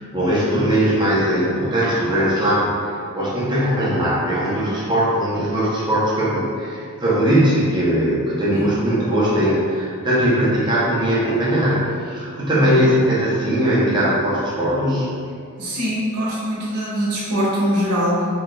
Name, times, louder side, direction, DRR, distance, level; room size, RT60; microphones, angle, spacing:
voice 1, 0.1-15.1, equal, 20° right, -9 dB, 0.7 m, -20 dB
voice 2, 12.5-12.9 15.6-18.3, equal, 75° right, -6 dB, 1.0 m, -23 dB
3.6 x 3.0 x 2.2 m, 2.3 s
head